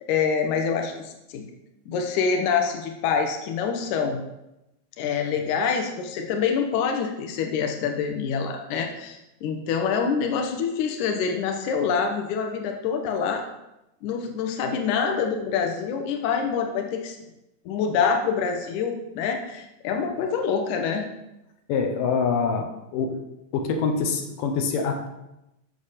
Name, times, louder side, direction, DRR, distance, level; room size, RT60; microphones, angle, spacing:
voice 1, 0.0-1.4 1.9-4.2 5.0-13.4 14.0-17.2 17.7-21.0, left 6 dB, 85° left, 4 dB, 1.7 m, -26 dB
voice 2, 21.7-23.2 23.5-25.1, left 5 dB, 65° left, 3 dB, 2.3 m, -25 dB
7.9 x 6.6 x 6.7 m, 0.91 s
omnidirectional pair, 5.0 m